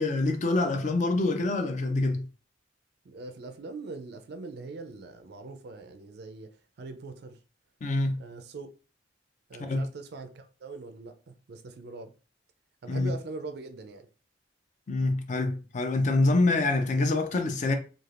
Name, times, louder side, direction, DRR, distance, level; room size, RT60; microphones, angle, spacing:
voice 1, 0.0-2.2 7.8-8.2 9.6-9.8 12.9-13.1 14.9-17.7, left 2 dB, 40° left, 0.4 m, -26 dB
voice 2, 3.0-6.5 6.8-7.4 8.2-8.7 9.5-12.1 12.8-14.1, right 3 dB, 55° right, 0.4 m, -42 dB
3.2 x 2.4 x 2.4 m
head